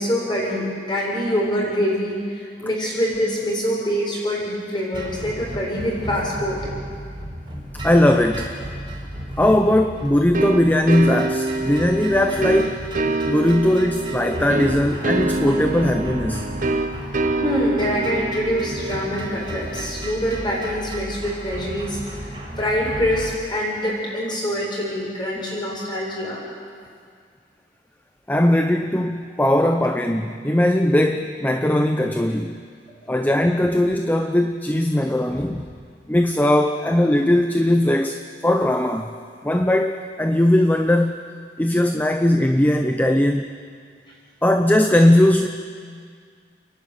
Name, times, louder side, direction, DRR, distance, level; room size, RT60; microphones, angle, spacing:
voice 1, 0.0-6.7 17.4-26.4 32.9-33.0, equal, 25° left, -4 dB, 7.6 m, -25 dB
sound 1, 4.9-23.3, right 1 dB, 25° right, 4.5 m, -34 dB
voice 2, 7.7-8.6 9.4-16.5 28.3-32.6 33.1-35.7 36.1-39.1 39.4-41.2 41.6-43.5 44.4-45.5, left 1 dB, 10° left, 5 dB, 0.7 m, -19 dB
sound 2, 10.3-20.8, right 2 dB, 50° right, 1.1 m, -26 dB
29.5 x 11.5 x 9.6 m, 2.1 s
head